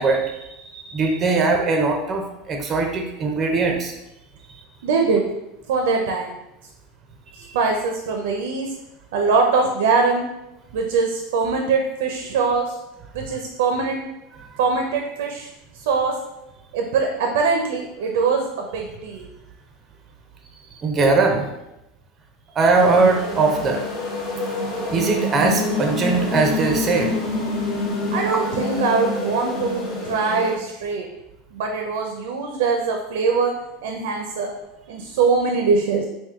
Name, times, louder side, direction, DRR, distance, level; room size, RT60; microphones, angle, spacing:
voice 1, 0.0-3.9 7.3-7.6 20.8-21.4 22.5-23.8 24.9-27.1, right 3 dB, 25° right, 3 dB, 0.4 m, -20 dB
voice 2, 4.8-5.2 5.7-6.3 7.5-8.7 9.1-10.3 10.7-12.8 13.1-14.0 14.6-15.5 15.7-16.1 16.7-19.3 28.1-31.1 31.5-33.6 33.8-34.5 34.9-36.1, right 4 dB, 80° right, 3 dB, 0.5 m, -22 dB
sound 1, 22.7-30.6, left 2 dB, 45° left, 0.9 m, -27 dB
3.6 x 2.5 x 3.5 m, 0.92 s
supercardioid pair, 155°, 0 cm